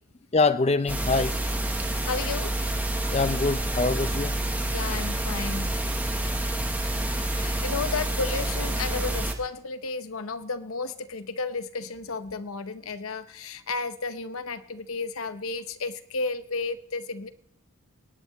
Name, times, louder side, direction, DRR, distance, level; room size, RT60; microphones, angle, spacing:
voice 1, 0.3-1.4 3.1-4.4 6.2-6.3, left 3 dB, 30° left, 13 dB, 0.5 m, -24 dB
sound 1, 0.9-9.3, right 1 dB, 5° right, 0.9 m, -28 dB
voice 2, 2.0-2.5 4.7-5.8 7.3-17.3, left 4 dB, 75° left, 11 dB, 0.8 m, -33 dB
23.5 x 10.5 x 3.1 m, 0.69 s
head